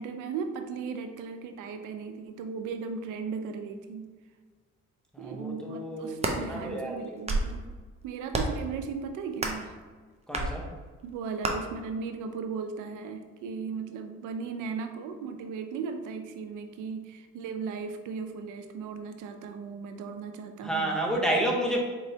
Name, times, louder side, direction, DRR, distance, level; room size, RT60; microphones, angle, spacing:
voice 1, 0.0-4.1 5.2-7.7 8.0-9.7 11.0-21.0, right 5 dB, 90° right, 7 dB, 0.5 m, -37 dB
voice 2, 5.1-7.0 10.3-10.7 20.6-21.8, right 1 dB, ahead, -3 dB, 0.9 m, -30 dB
sound 1, 6.0-6.4 7.0-7.6 8.3-8.7 9.4-9.7 10.3-10.5 11.4-11.5, right 2 dB, 20° right, 0.6 m, -29 dB
4.3 x 3.1 x 2.7 m, 1.4 s
cardioid pair, 90°, 30 cm